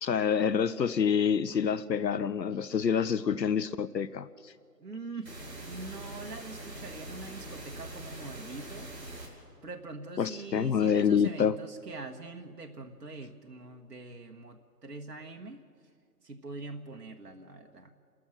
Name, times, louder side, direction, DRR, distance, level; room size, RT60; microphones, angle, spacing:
voice 1, 0.0-4.5 10.2-11.6, left 7 dB, 85° left, 17 dB, 0.8 m, -27 dB
voice 2, 4.8-8.9 9.3-9.4 9.6-15.6 16.2-17.9, right 3 dB, 75° right, 3 dB, 1.5 m, -44 dB
sound 1, 5.2-9.3, right 1 dB, 55° right, 6.3 m, -43 dB
30.0 x 14.0 x 6.3 m, 2.2 s
figure-of-eight pair, 180°, 49 cm